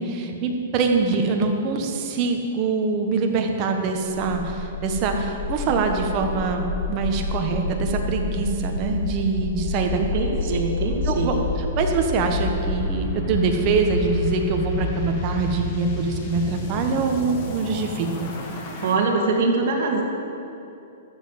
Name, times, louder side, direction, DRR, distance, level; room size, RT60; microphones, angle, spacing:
voice 1, 0.0-10.0 11.1-11.3 11.8-18.3, right 4 dB, 30° right, 3 dB, 1.4 m, -24 dB
sound 1, 4.0-18.9, left 2 dB, 40° left, 1.8 m, -29 dB
voice 2, 9.9-11.4 18.8-20.0, right 3 dB, 50° right, -1 dB, 2.4 m, -23 dB
13.0 x 6.9 x 7.6 m, 2.7 s
hypercardioid pair, 150°, 0 cm